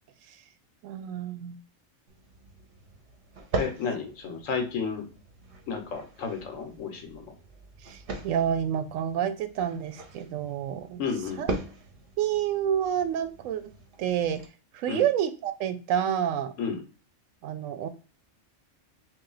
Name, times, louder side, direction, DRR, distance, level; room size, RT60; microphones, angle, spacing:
voice 1, 0.8-1.6 7.8-11.0 11.4-11.5 12.2-13.6 14.0-14.4 14.7-16.5 17.4-17.9, right 9 dB, 90° right, 10 dB, 1.0 m, -28 dB
sound 1, 2.1-14.5, right 3 dB, 55° right, 0.8 m, -40 dB
voice 2, 3.5-5.0 5.7-7.2 11.0-11.5 14.9-15.1 16.6-16.8, left 5 dB, 85° left, 5 dB, 1.2 m, -32 dB
3.2 x 2.6 x 3.8 m, 0.36 s
omnidirectional pair, 1.3 m